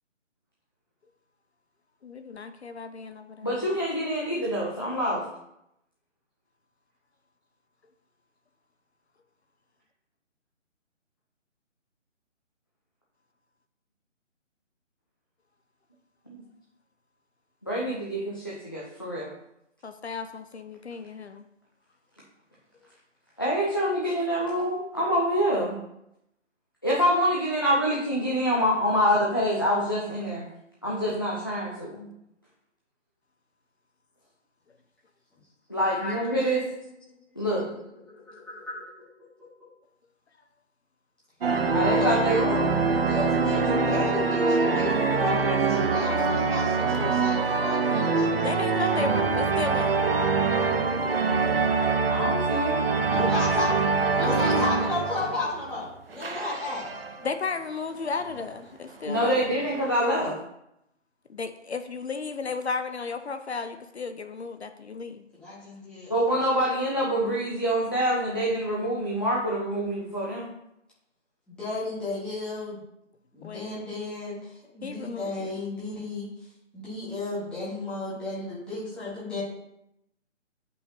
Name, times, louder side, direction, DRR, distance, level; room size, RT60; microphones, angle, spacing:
voice 1, 2.0-3.5 19.8-21.4 45.9-47.4 48.4-49.9 54.2-54.7 57.2-59.4 61.3-65.3 73.4-73.9 74.8-75.6, left 4 dB, 60° left, 8 dB, 0.6 m, -34 dB
voice 2, 3.4-5.2 16.3-16.4 17.6-19.3 23.4-25.8 26.8-30.5 30.8-32.1 35.7-36.6 37.4-37.7 41.7-42.8 52.1-52.8 59.0-60.4 66.1-70.5, equal, 20° left, -5 dB, 0.5 m, -26 dB
voice 3, 35.9-36.8 37.1-37.2 37.6-37.8 38.1-38.8 41.9-42.4 43.0-48.3 48.8-49.0 53.1-56.8 65.3-66.4 71.5-72.8 73.3-76.3 76.7-79.4, left 2 dB, ahead, -11 dB, 1.4 m, -34 dB
sound 1, 41.4-55.8 56.1-57.3 57.9-58.0 58.3-58.4 59.2-60.3, right 4 dB, 50° right, 0.7 m, -24 dB
8.9 x 5.5 x 2.7 m, 0.82 s
figure-of-eight pair, 155°, 37 cm